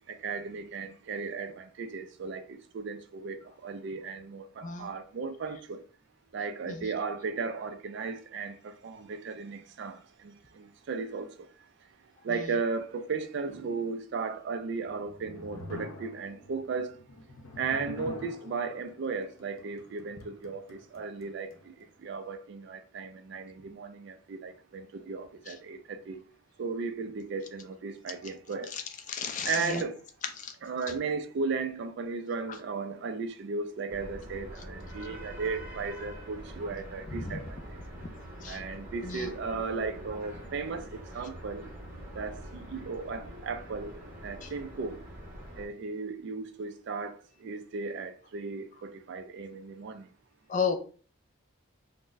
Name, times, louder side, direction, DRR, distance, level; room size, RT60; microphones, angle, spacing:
voice 1, 0.1-3.4 3.6-5.8 6.3-10.0 10.2-11.3 12.2-16.9 17.6-21.5 22.0-26.2 26.6-28.7 29.5-30.0 30.6-37.6 38.5-40.9 41.1-41.6 42.1-43.9 44.2-45.0 45.6-50.1, right 4 dB, 55° right, 0.3 m, -35 dB
sound 1, 14.7-21.9, left 1 dB, 80° left, 0.6 m, -47 dB
voice 2, 29.1-29.8 30.4-30.5 37.2-37.4 38.0-38.1 38.4-38.6 39.0-39.3 44.4-44.5 50.5-50.8, left 6 dB, 35° left, 0.4 m, -33 dB
sound 2, 33.9-45.7, equal, 40° right, 0.8 m, -44 dB
3.9 x 2.1 x 2.5 m
head